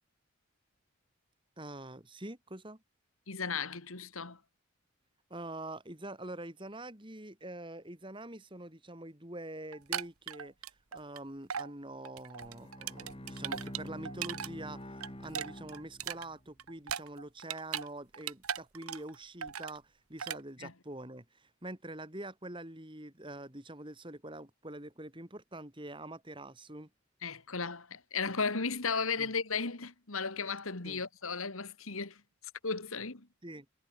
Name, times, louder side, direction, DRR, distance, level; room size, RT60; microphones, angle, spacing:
voice 1, 1.6-2.8 5.3-26.9 29.2-29.3 30.8-31.0 33.4-33.7, right 1 dB, 20° right, 2.7 m, -45 dB
voice 2, 3.3-4.4 20.6-20.7 27.2-32.2 32.6-33.3, left 5 dB, 75° left, 2.1 m, -35 dB
sound 1, 9.7-11.2 11.5-11.7 12.0-14.5 14.8-17.9 18.1-19.2 19.4-19.8 20.2-20.4, right 8 dB, 85° right, 1.4 m, -38 dB
Bowed string instrument, 12.4-16.5, equal, 25° left, 4.8 m, -47 dB
head